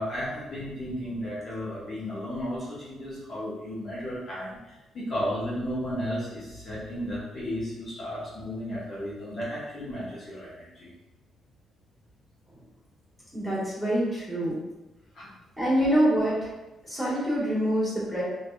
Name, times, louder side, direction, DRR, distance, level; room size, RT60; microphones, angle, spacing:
voice 1, 0.0-10.9 15.1-15.3, equal, 50° left, -8 dB, 0.8 m, -34 dB
voice 2, 13.3-14.6 15.6-16.5 16.8-18.2, equal, 5° left, -9 dB, 1.4 m, -25 dB
2.7 x 2.3 x 2.2 m, 1.0 s
cardioid pair, 90°, 0 cm